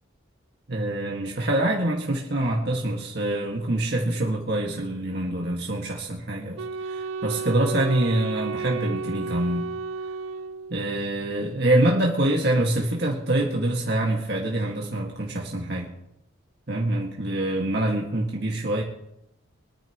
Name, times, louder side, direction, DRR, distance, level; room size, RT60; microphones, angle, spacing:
voice 1, 0.7-9.7 10.7-15.9 16.7-18.8, right 1 dB, 55° right, -2 dB, 1.9 m, -25 dB
Wind instrument woodwind instrument, 6.6-11.0, right 4 dB, 80° right, 0.4 m, -33 dB
25.0 x 10.0 x 3.1 m, 0.83 s
head